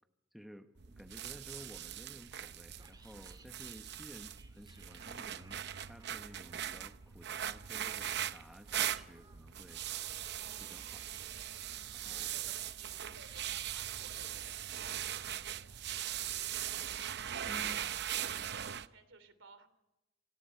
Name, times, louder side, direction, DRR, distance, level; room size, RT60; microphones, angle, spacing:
voice 1, 0.3-9.8 10.6-11.1 11.9-12.3 17.5-17.8, equal, ahead, 7 dB, 0.9 m, -54 dB
sound 1, 0.8-18.9, right 10 dB, 60° right, 0.7 m, -40 dB
sound 2, 2.8-15.3, right 3 dB, 20° right, 2.9 m, -65 dB
voice 2, 12.1-17.2 17.8-19.7, right 4 dB, 80° right, 12 dB, 3.0 m, -59 dB
27.0 x 18.0 x 5.7 m, 0.97 s
head